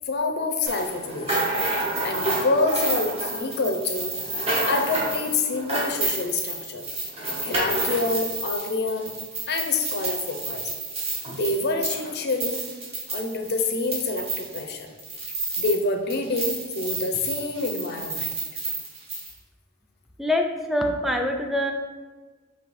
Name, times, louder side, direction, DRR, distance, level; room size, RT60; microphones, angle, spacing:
voice 1, 0.1-1.5 1.8-4.1 4.7-6.8 7.4-9.1 9.5-10.7 11.3-12.6 13.1-14.9 15.6-18.3, left 3 dB, 55° left, 5 dB, 0.5 m, -27 dB
sound 1, 0.7-15.8 16.1-19.3, right 2 dB, 30° right, 1.0 m, -30 dB
voice 2, 20.2-21.7, left 1 dB, ahead, 3 dB, 0.3 m, -24 dB
5.2 x 2.7 x 3.1 m, 1.3 s
head